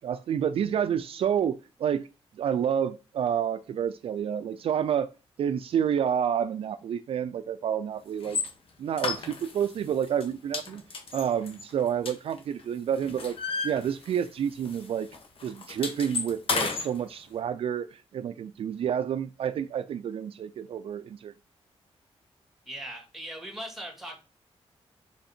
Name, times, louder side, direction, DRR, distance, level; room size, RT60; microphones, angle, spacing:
voice 1, 0.0-2.1 2.4-5.1 5.4-8.4 8.8-10.8 11.1-13.4 13.6-15.1 15.4-21.3, right 8 dB, 60° right, 0.4 m, -29 dB
sound 1, 8.2-8.5 9.0-9.7 10.0-10.2 10.5-12.6 12.9-14.4 14.6-14.8 15.1-16.9, left 4 dB, 60° left, 1.5 m, -32 dB
voice 2, 22.7-24.2, right 1 dB, ahead, 2.0 m, -39 dB
5.7 x 5.3 x 4.3 m
wide cardioid pair, 175°, 11 cm